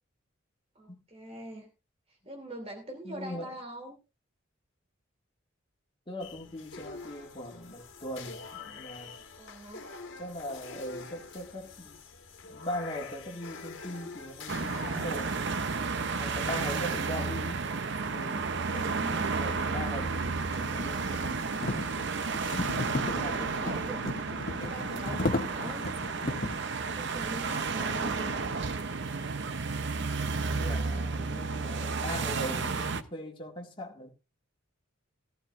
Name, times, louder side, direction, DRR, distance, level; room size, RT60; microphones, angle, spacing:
voice 1, 0.7-1.7 2.1-4.0 9.2-9.8 18.6-19.3 23.2-24.1 24.5-28.5, right 1 dB, 30° right, 2.8 m, -43 dB
voice 2, 3.0-3.5 6.1-9.1 10.2-12.0 12.5-15.4 16.0-17.6 18.1-21.5 22.8-23.7 30.4-34.1, left 1 dB, 25° left, 1.9 m, -40 dB
sound 1, 6.2-16.8, left 4 dB, 60° left, 1.6 m, -46 dB
sound 2, 14.5-33.0, right 4 dB, 55° right, 0.7 m, -32 dB
sound 3, 17.8-17.9 18.7-26.7, left 2 dB, 40° left, 0.9 m, -36 dB
15.0 x 14.0 x 2.5 m
head